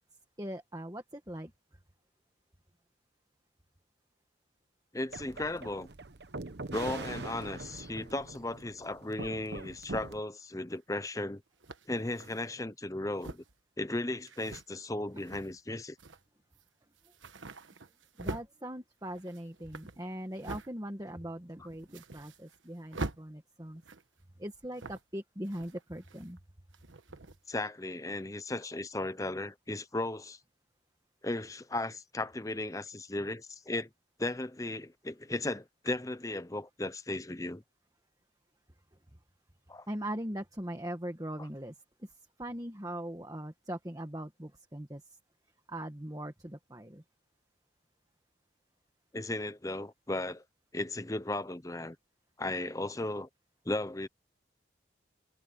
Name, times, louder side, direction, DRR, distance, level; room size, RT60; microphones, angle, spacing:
voice 1, 0.4-1.5 18.2-23.8 24.4-26.4 39.9-45.2 45.7-47.0, right 1 dB, 20° right, 1.6 m, -40 dB
voice 2, 4.9-5.9 6.7-11.4 11.9-13.4 13.8-16.0 27.5-30.4 31.2-33.9 34.2-37.6 39.7-39.9 49.1-50.4 50.7-52.0 52.4-53.3 53.6-54.1, left 2 dB, 15° left, 0.7 m, -36 dB
sound 1, 5.1-10.2, right 2 dB, 60° right, 1.0 m, -43 dB
sound 2, 10.7-10.8 11.6-12.5 13.1-13.6 14.3-14.6 15.1-15.6 16.0-16.2 16.6-16.7 17.0-18.5 19.0-20.7 21.1-21.2 21.6-22.7 22.9-23.2 23.8-24.2 24.7-25.2 25.4-26.4 26.7-27.4, right 2 dB, 85° right, 1.3 m, -44 dB
head